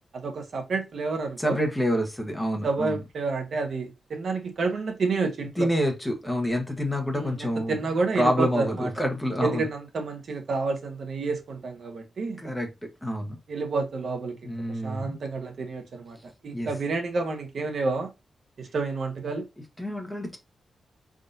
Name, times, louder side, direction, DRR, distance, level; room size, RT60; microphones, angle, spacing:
voice 1, 0.1-1.6 2.6-5.7 7.1-8.9 9.4-12.4 13.5-18.1 18.6-19.4, right 3 dB, 55° right, 1.1 m, -29 dB
voice 2, 1.4-3.0 5.6-7.8 8.1-9.7 12.4-12.7 13.0-13.4 14.4-15.2 16.5-16.7 19.8-20.4, equal, 10° left, 1.1 m, -27 dB
5.2 x 3.6 x 2.6 m
wide cardioid pair, 150°, 0 cm